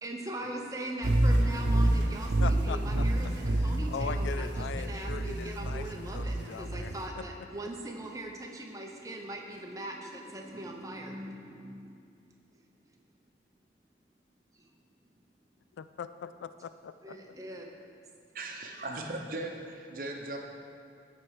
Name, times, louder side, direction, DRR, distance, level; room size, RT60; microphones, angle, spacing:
voice 1, 0.0-11.9 14.5-14.6 17.0-17.9, right 1 dB, 20° right, 1 dB, 0.7 m, -41 dB
sound 1, 1.0-7.0, right 1 dB, 85° right, 0.7 m, -28 dB
voice 2, 2.4-3.0 3.5-7.2 15.8-17.2, left 6 dB, 80° left, 13 dB, 0.3 m, -40 dB
voice 3, 18.3-20.4, right 2 dB, 50° right, 2 dB, 0.8 m, -38 dB
12.5 x 4.4 x 4.8 m, 2.4 s
head